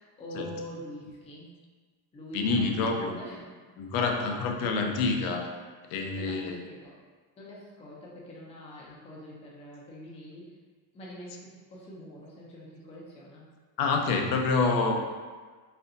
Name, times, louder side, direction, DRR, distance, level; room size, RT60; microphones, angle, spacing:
voice 1, 0.0-1.5 2.1-2.8 3.1-3.5 3.9-4.8 6.1-7.0 7.4-10.5 10.9-13.4, equal, 15° left, -5 dB, 0.6 m, -44 dB
voice 2, 2.3-3.2 3.8-5.5 5.9-6.6 13.8-14.9, left 4 dB, 55° left, 3 dB, 0.7 m, -27 dB
4.2 x 3.7 x 2.7 m, 1.4 s
cardioid pair, 145°, 44 cm